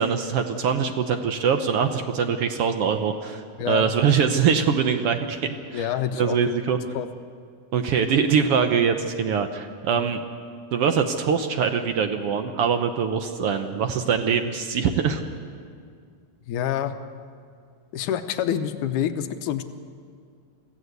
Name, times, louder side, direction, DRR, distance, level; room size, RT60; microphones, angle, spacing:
voice 1, 0.0-6.8 7.7-10.2 10.7-15.2, right 6 dB, 65° right, 7 dB, 1.5 m, -23 dB
voice 2, 5.7-6.5 6.9-7.1 9.9-10.0 16.5-16.9 17.9-19.6, left 10 dB, 85° left, 9 dB, 2.4 m, -27 dB
22.5 x 15.5 x 8.1 m, 2.2 s
omnidirectional pair, 3.5 m